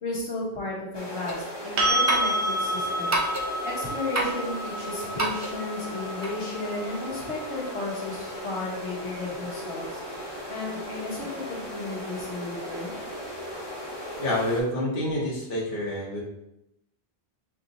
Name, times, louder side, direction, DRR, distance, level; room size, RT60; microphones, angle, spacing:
voice 1, 0.0-3.2 3.6-12.9 15.0-15.2, left 2 dB, 85° left, -5 dB, 1.5 m, -34 dB
sound 1, 0.9-14.6, equal, 25° left, 0.9 m, -37 dB
sound 2, 1.3-1.5 2.1-2.4 3.1-3.6 4.2-4.5 5.2-5.6 6.2-6.3, right 2 dB, 30° right, 0.3 m, -28 dB
sound 3, 1.8-9.6 12.4-12.5, right 1 dB, 85° right, 1.1 m, -30 dB
voice 2, 14.2-16.2, left 1 dB, 55° left, -5 dB, 1.2 m, -27 dB
5.9 x 2.9 x 2.6 m, 0.84 s
omnidirectional pair, 1.1 m